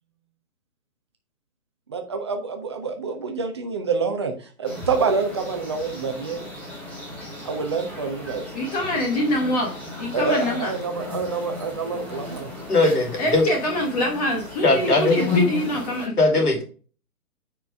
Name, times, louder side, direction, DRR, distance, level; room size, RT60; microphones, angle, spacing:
voice 1, 1.9-4.3 4.6-6.5 7.4-8.4 10.1-12.5, right 4 dB, 20° right, 5 dB, 0.5 m, -27 dB
sound 1, 4.6-16.1, left 3 dB, 5° left, 0.9 m, -33 dB
voice 2, 8.5-10.7 13.2-16.2, left 1 dB, 25° left, 1 dB, 1.1 m, -25 dB
voice 3, 12.7-13.4 14.6-15.2 16.2-16.6, left 2 dB, 75° left, 2 dB, 2.9 m, -19 dB
9.1 x 4.6 x 3.3 m, 0.38 s
figure-of-eight pair, 130°, 46 cm